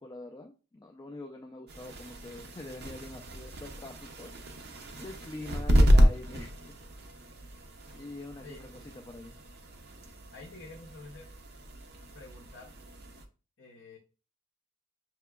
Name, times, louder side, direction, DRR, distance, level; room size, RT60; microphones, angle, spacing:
voice 1, 0.0-4.3 5.0-6.5 8.0-9.4, left 2 dB, 20° left, 3 dB, 0.3 m, -44 dB
sound 1, 1.7-13.2, equal, 50° right, 0.6 m, -30 dB
voice 2, 10.3-11.3 12.1-12.7 13.6-14.0, left 3 dB, 60° left, 0 dB, 0.7 m, -48 dB
5.6 x 2.9 x 2.3 m, 0.34 s
head